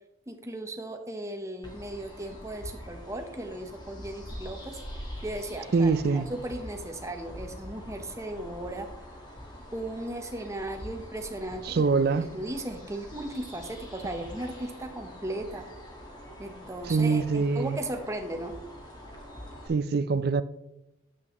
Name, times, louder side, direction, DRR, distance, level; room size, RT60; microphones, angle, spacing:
voice 1, 0.3-4.8 5.2-8.9 9.7-11.8 12.2-15.7 16.4-18.5, right 1 dB, 15° right, 0.9 m, -36 dB
sound 1, 1.6-19.7, equal, 25° left, 1.5 m, -44 dB
voice 2, 5.7-6.3 11.7-12.3 16.9-17.8 19.7-20.4, right 4 dB, 55° right, 0.4 m, -24 dB
9.6 x 7.7 x 3.0 m
head